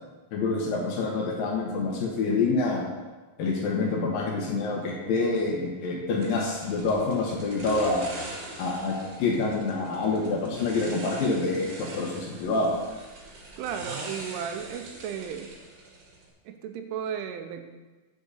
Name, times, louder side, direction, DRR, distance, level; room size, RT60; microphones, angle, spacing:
voice 1, 0.3-2.9 3.4-8.1 8.6-12.8, left 3 dB, 80° left, -1 dB, 2.0 m, -27 dB
sound 1, 6.2-16.3, right 2 dB, 55° right, 3.0 m, -42 dB
voice 2, 13.6-15.5 16.5-17.7, right 8 dB, 80° right, 6 dB, 3.1 m, -34 dB
8.4 x 7.9 x 5.5 m, 1.3 s
omnidirectional pair, 5.8 m